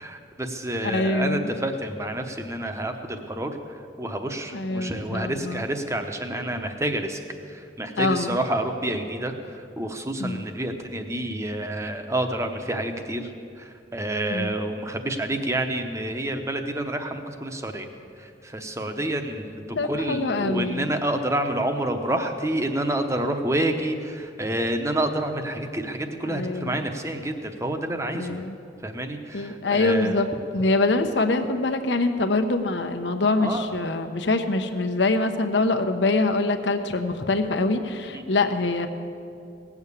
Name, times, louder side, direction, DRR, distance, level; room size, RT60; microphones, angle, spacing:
voice 1, 0.0-3.6 4.0-7.2 7.5-13.3 13.6-17.9 18.2-28.4 28.8-30.2 33.4-33.8 38.1-38.3, right 1 dB, 15° right, 6 dB, 0.9 m, -28 dB
voice 2, 0.8-1.5 4.5-5.6 8.0-8.4 10.2-10.4 14.3-14.5 19.7-20.9 26.2-26.9 28.1-28.6 29.3-30.3 30.5-38.9, left 2 dB, 75° left, 7 dB, 1.0 m, -24 dB
18.0 x 7.2 x 8.3 m, 2.5 s
head